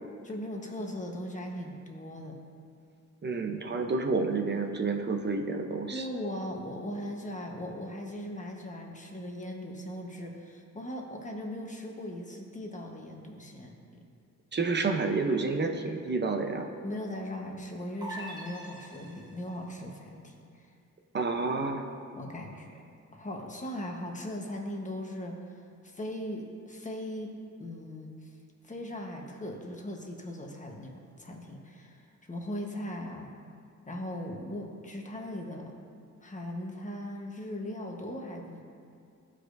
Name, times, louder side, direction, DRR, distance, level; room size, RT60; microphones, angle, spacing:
voice 1, 0.2-2.4 5.9-14.0 16.8-20.7 22.1-22.8 23.1-25.4 25.8-27.3 27.6-28.3 28.6-30.9 31.2-33.3 33.9-35.7 36.2-38.6, left 1 dB, 25° left, 1 dB, 1.2 m, -39 dB
voice 2, 3.2-6.1 14.5-16.7 21.1-21.8, right 3 dB, 35° right, 4 dB, 0.8 m, -29 dB
sound 1, 18.0-19.6, right 1 dB, 15° right, 1.3 m, -43 dB
15.0 x 5.0 x 2.6 m, 2.4 s
cardioid pair, 80°, 30 cm